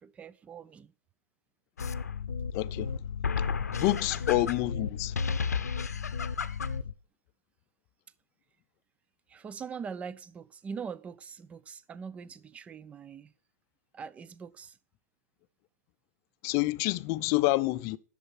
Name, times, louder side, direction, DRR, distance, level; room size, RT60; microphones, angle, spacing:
voice 1, 0.0-0.9 4.0-4.2 9.3-13.3 13.9-14.8, right 6 dB, 15° right, 0.5 m, -42 dB
sound 1, 1.8-6.9, left 6 dB, 85° left, 0.8 m, -32 dB
voice 2, 2.5-2.9 3.6-5.1 16.4-18.0, left 18 dB, 35° left, 0.5 m, -28 dB
11.0 x 6.8 x 5.8 m
hypercardioid pair, 115°, 9 cm